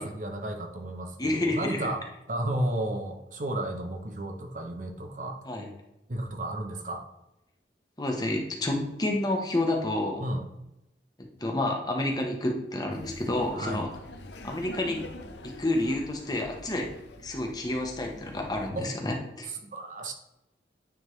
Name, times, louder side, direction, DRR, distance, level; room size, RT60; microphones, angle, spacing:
voice 1, 0.0-5.4 6.1-7.0 10.2-10.5 13.5-13.9 18.7-19.0 19.4-20.1, right 1 dB, 45° right, 4 dB, 0.7 m, -33 dB
voice 2, 1.2-1.9 5.5-5.7 8.0-10.3 11.2-13.9 14.4-15.0 15.4-16.9 17.2-19.5, left 1 dB, 20° left, 1 dB, 0.9 m, -29 dB
Laughter, 12.9-18.7, left 1 dB, 80° left, 0.7 m, -45 dB
9.4 x 3.6 x 3.1 m, 0.90 s
head